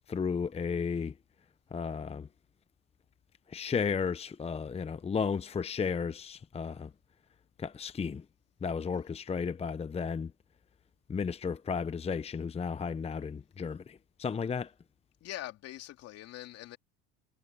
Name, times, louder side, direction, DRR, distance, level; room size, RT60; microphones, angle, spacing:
voice 1, 0.1-1.1 1.7-2.3 3.5-6.9 7.6-8.2 8.6-10.3 11.1-14.7, left 6 dB, 20° left, 0.8 m, -33 dB
voice 2, 15.2-16.8, left 14 dB, 55° left, 2.7 m, -43 dB
supercardioid pair, 90°, 30 cm